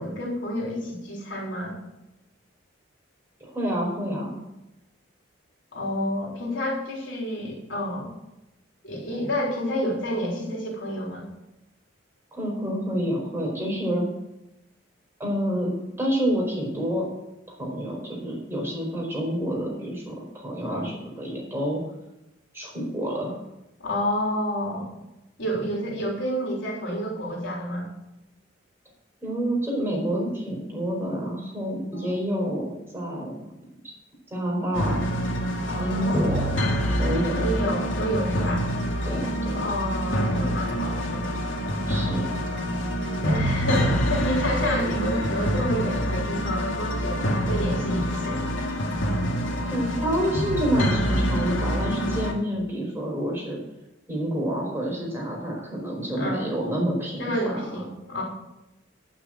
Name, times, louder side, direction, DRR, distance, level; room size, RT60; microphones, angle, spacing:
voice 1, 0.0-1.8 5.7-8.1 8.8-11.3 20.6-20.9 23.8-24.9 25.4-27.9 31.9-32.1 35.6-36.3 37.4-38.6 39.5-41.4 43.2-48.4 56.1-56.5 57.2-58.2, equal, 70° left, -2 dB, 3.8 m, -29 dB
voice 2, 3.4-4.4 12.3-14.1 15.2-17.1 17.5-21.8 22.5-23.3 29.2-33.5 34.3-35.0 35.8-36.5 37.0-37.4 38.4-38.5 39.0-39.6 41.9-42.3 49.7-53.6 54.1-57.7, equal, 10° right, -3 dB, 4.8 m, -28 dB
sound 1, 34.7-52.3, equal, 90° left, 2.2 m, -26 dB
11.5 x 6.5 x 7.8 m, 0.91 s
head